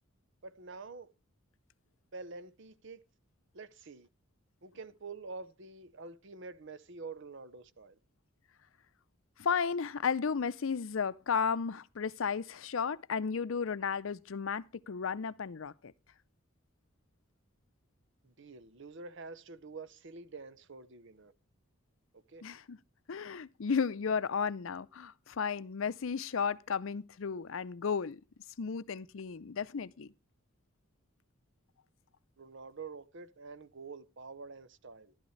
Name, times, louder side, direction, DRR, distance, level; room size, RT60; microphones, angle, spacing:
voice 1, 0.4-1.1 2.1-3.0 3.5-4.1 4.6-8.0 18.2-21.3 22.1-22.4 32.4-35.1, right 4 dB, 60° right, 0.8 m, -47 dB
voice 2, 9.4-15.9 22.4-22.8 23.1-28.2 28.6-30.1, left 6 dB, 70° left, 0.5 m, -34 dB
12.5 x 12.0 x 3.2 m
head